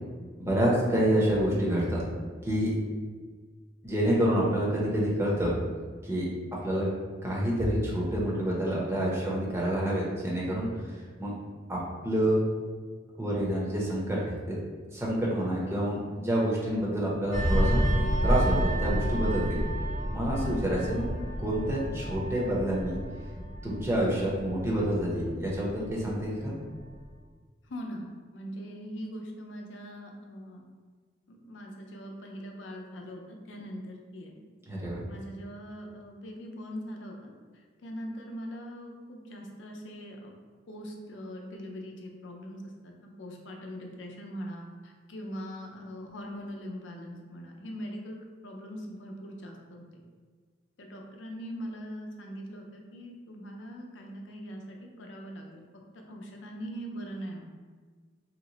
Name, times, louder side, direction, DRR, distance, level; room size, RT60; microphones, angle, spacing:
voice 1, 0.4-2.0 2.4-2.8 3.8-5.5 6.0-6.3 6.6-6.9 7.2-10.7 11.2-11.3 11.7-11.8 12.0-12.4 13.2-14.6 14.9-17.8 18.2-19.6 20.1-21.1 21.4-23.0 23.6-26.5 34.6-35.0, equal, 15° right, -5 dB, 0.6 m, -28 dB
sound 1, 17.3-26.4 26.7-27.0, equal, 40° left, 0.6 m, -30 dB
voice 2, 27.7-30.6 31.3-34.4 35.1-37.3 37.8-40.3 40.7-48.2 48.4-49.8 50.8-55.6 56.1-57.5, equal, 90° left, 1 dB, 0.5 m, -41 dB
2.9 x 2.1 x 3.8 m, 1.5 s
head